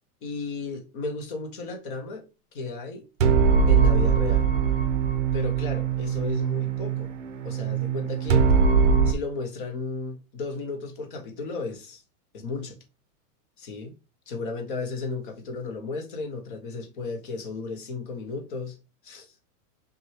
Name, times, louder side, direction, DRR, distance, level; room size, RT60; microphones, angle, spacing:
voice 1, 0.2-2.3 2.5-3.0 3.7-4.5 5.3-7.1 7.4-8.5 9.1-12.0 12.3-12.8 13.6-13.9 14.3-18.8 19.0-19.3, left 4 dB, 35° left, 0.7 m, -34 dB
sound 1, 3.2-9.1, right 6 dB, 55° right, 0.6 m, -22 dB
5.9 x 2.3 x 2.8 m
supercardioid pair, 180°, 46 cm